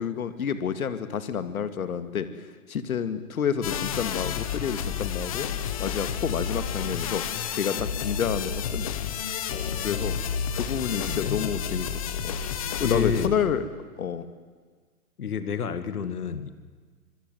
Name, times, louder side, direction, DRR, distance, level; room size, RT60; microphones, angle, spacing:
voice 1, 0.0-2.3 2.7-5.5 5.8-7.2 7.5-8.9 9.8-10.2 10.5-12.3 12.8-13.6 14.0-14.3, left 7 dB, 70° left, 11 dB, 2.3 m, -29 dB
sound 1, 3.6-13.3, left 7 dB, 25° left, 1.2 m, -30 dB
voice 2, 9.5-10.3 10.9-11.6 12.8-13.4 15.2-16.5, left 6 dB, 90° left, 12 dB, 2.2 m, -31 dB
25.5 x 25.0 x 9.2 m, 1.5 s
hypercardioid pair, 175°, 44 cm